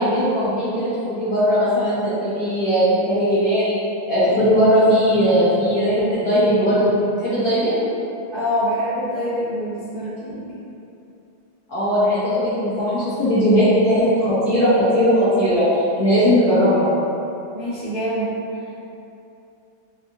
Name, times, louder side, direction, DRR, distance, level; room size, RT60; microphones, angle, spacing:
voice 1, 0.0-3.8 4.1-7.9 11.7-16.9, equal, 55° left, -13 dB, 1.3 m, -18 dB
voice 2, 8.3-10.5 17.5-18.3, equal, 35° right, -17 dB, 0.8 m, -25 dB
3.8 x 2.4 x 2.5 m, 2.7 s
omnidirectional pair, 2.3 m